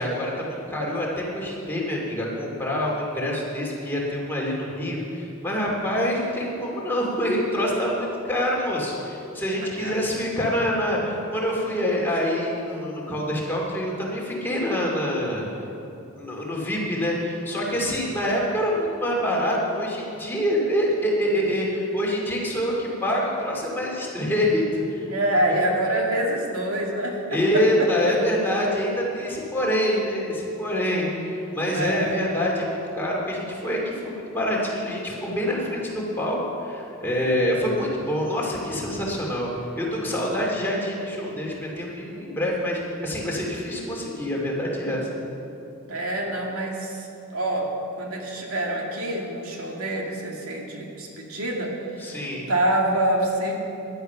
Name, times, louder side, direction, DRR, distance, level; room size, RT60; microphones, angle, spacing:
voice 1, 0.0-15.5 16.2-25.0 25.4-25.5 27.3-39.5 39.8-45.1 52.0-52.5, equal, 10° left, -3 dB, 2.7 m, -26 dB
voice 2, 25.1-27.6 28.0-28.1 31.7-32.2 45.9-47.7 48.0-53.5, right 1 dB, 85° right, -1 dB, 2.2 m, -26 dB
15.0 x 11.0 x 5.7 m, 2.8 s
head